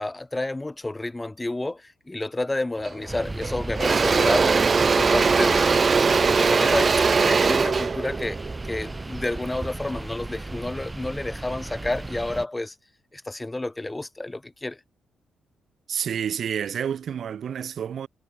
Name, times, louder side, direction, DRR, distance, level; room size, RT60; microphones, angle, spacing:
voice 1, 0.0-4.7 5.0-5.8 6.3-8.4 8.6-12.7 13.1-14.8, left 2 dB, 15° left, 4.3 m, -30 dB
Engine / Drill, 2.8-3.1 3.4-9.5, right 5 dB, 35° right, 2.9 m, -21 dB
sound 1, 3.1-12.4, right 2 dB, 15° right, 5.5 m, -35 dB
voice 2, 15.9-18.1, right 8 dB, 60° right, 4.7 m, -29 dB
cardioid pair, 90°, 0 cm